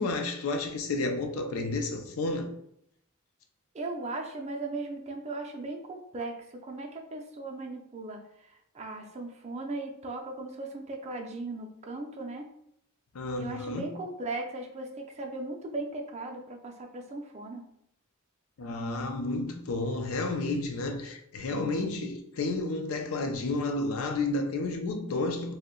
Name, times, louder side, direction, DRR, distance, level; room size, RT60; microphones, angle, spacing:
voice 1, 0.0-2.5 13.1-13.9 18.6-25.5, left 2 dB, 75° left, 0.5 m, -31 dB
voice 2, 3.7-12.5 13.4-17.7, right 2 dB, 30° right, 0.4 m, -38 dB
2.6 x 2.1 x 3.7 m
head